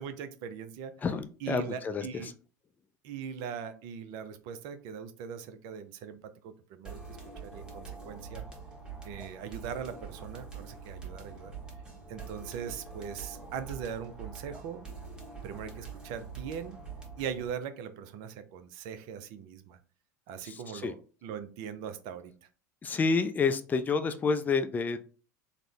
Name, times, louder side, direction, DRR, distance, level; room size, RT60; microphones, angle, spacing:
voice 1, 0.0-1.0 1.4-2.3 3.0-6.2 6.4-7.2 7.4-8.4 9.0-11.5 12.1-14.8 15.4-16.8 17.2-19.8 20.3-22.3, right 7 dB, 55° right, 10 dB, 0.5 m, -40 dB
voice 2, 1.0-2.1 20.4-20.9 22.8-25.0, left 4 dB, 20° left, 9 dB, 0.4 m, -29 dB
sound 1, 6.8-17.5, right 5 dB, 10° right, 1.2 m, -44 dB
3.7 x 2.1 x 3.1 m, 0.37 s
hypercardioid pair, 80°, 9 cm